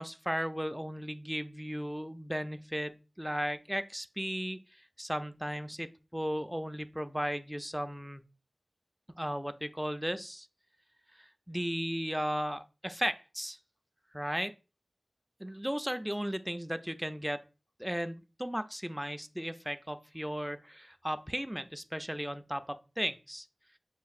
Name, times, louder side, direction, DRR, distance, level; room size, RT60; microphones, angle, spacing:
voice 1, 0.0-4.6 5.0-8.2 9.2-10.5 11.2-13.6 14.1-14.5 15.4-17.4 17.8-23.5, equal, 5° right, 10 dB, 0.3 m, -35 dB
6.5 x 2.6 x 2.4 m, 0.32 s
wide cardioid pair, 55°, 0 cm